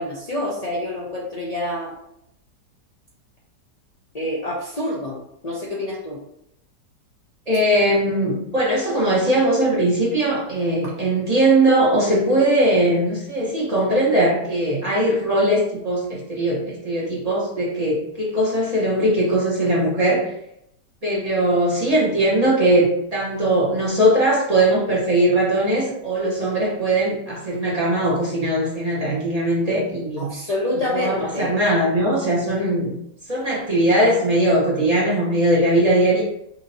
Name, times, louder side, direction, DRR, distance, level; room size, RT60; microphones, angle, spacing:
voice 1, 0.0-1.9 4.1-5.2 5.4-6.2 30.2-31.5, left 1 dB, 80° left, -5 dB, 0.3 m, -27 dB
voice 2, 7.5-20.3 21.0-30.3 30.9-32.9 33.3-36.2, right 1 dB, 25° right, -6 dB, 1.2 m, -20 dB
5.5 x 2.8 x 2.8 m, 0.78 s
omnidirectional pair, 1.9 m